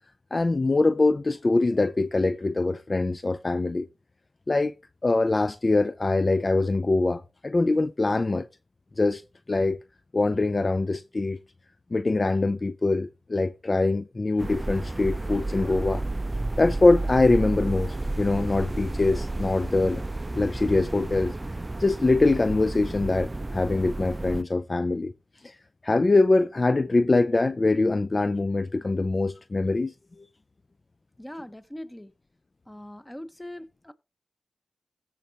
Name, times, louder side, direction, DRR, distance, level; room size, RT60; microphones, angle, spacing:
voice 1, 0.3-3.9 4.5-4.7 5.0-8.5 9.0-9.2 9.5-9.8 10.1-11.4 11.9-16.0 16.6-20.0 20.4-21.3 21.8-25.1 25.4-25.5 25.8-30.3, left 2 dB, 45° left, 0.4 m, -23 dB
sound 1, 14.4-24.4, right 2 dB, 30° right, 0.4 m, -31 dB
voice 2, 31.2-32.1 32.7-33.9, left 1 dB, 15° left, 1.3 m, -41 dB
16.0 x 5.8 x 3.0 m
cardioid pair, 45°, 0 cm